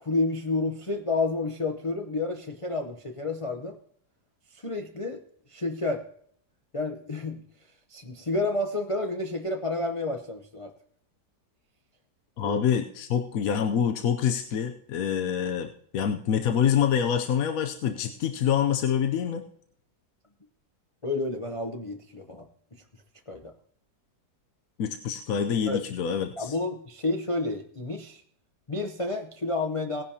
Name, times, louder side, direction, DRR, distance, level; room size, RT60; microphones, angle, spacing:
voice 1, 0.0-3.8 4.5-5.2 5.5-6.0 6.7-7.4 7.9-10.7 12.4-12.6 21.0-22.5 22.7-22.8 23.3-23.5 25.7-25.8 26.4-28.2 28.7-30.0, left 2 dB, 30° left, 3 dB, 0.5 m, -30 dB
voice 2, 12.4-19.4 24.8-26.5, left 8 dB, 65° left, 5 dB, 1.0 m, -26 dB
18.0 x 10.5 x 2.8 m, 0.65 s
omnidirectional pair, 1.8 m